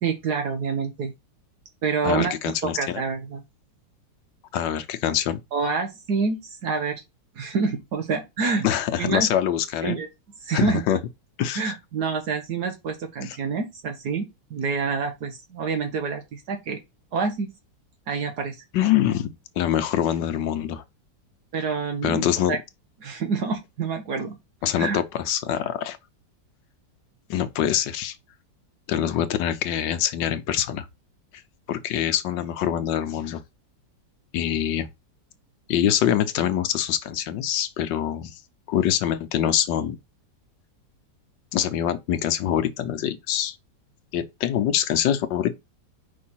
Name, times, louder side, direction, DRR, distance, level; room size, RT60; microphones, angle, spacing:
voice 1, 0.0-1.1 1.8-2.3 2.6-3.4 5.5-7.0 7.3-8.7 9.0-9.3 9.8-10.1 10.4-10.8 11.6-16.8 17.1-17.5 18.1-18.5 21.5-22.6 23.0-24.4 24.8-25.0, right 5 dB, 65° right, 1.5 m, -27 dB
voice 2, 2.0-3.0 4.5-5.4 8.6-10.0 10.5-11.0 11.4-11.6 13.2-13.4 18.7-19.3 19.6-20.8 22.0-22.6 24.6-26.0 27.3-28.2 28.9-30.9 31.7-33.4 34.3-34.9 35.7-38.3 38.7-40.0 41.5-43.6 44.1-45.5, left 10 dB, 85° left, 1.5 m, -24 dB
5.3 x 3.7 x 5.6 m
omnidirectional pair, 1.9 m